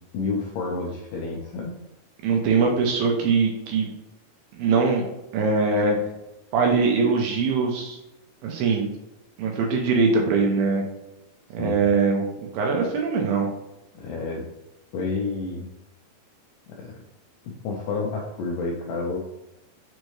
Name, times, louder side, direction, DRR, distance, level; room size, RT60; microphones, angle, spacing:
voice 1, 0.1-1.7 11.6-11.8 13.9-14.5 14.9-15.7 16.8-16.9 17.6-19.2, left 4 dB, 85° left, -1 dB, 2.0 m, -29 dB
voice 2, 2.2-3.9 4.5-5.0 5.3-6.0 6.5-8.0 8.4-8.9 9.4-10.8 11.5-12.2 12.5-13.5, right 4 dB, 80° right, 1 dB, 2.3 m, -22 dB
6.3 x 2.7 x 3.1 m, 0.94 s
omnidirectional pair, 4.5 m